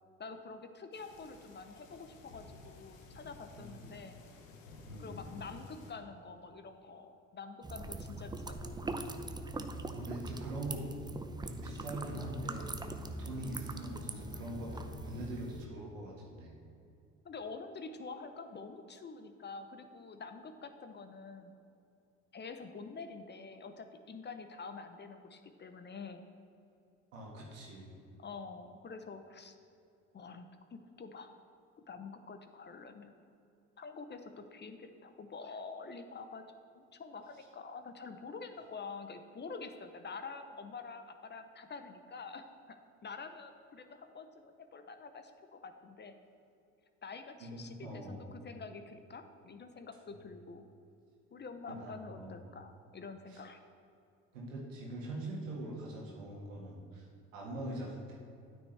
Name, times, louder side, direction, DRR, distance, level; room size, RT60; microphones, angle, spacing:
voice 1, 0.2-4.2 5.0-8.9 9.5-9.8 17.2-21.5 22.3-26.2 28.2-29.5 30.1-31.3 31.9-33.1 33.8-36.4 36.7-46.1 47.0-50.6 51.3-53.6, left 4 dB, 30° left, 8 dB, 0.7 m, -47 dB
sound 1, 0.9-5.9, left 3 dB, 80° left, 1.0 m, -53 dB
sound 2, 7.6-15.7, right 2 dB, 10° right, 0.5 m, -42 dB
voice 2, 9.9-10.9 11.4-12.7 13.2-16.5 27.1-27.9 47.4-48.3 51.7-52.4 53.3-53.4 54.3-57.1 57.3-58.2, right 1 dB, 85° right, -3 dB, 1.8 m, -43 dB
Bowed string instrument, 11.7-16.0, left 4 dB, 50° left, 1.1 m, -54 dB
9.2 x 9.2 x 3.3 m, 2.6 s
hypercardioid pair, 65°, 38 cm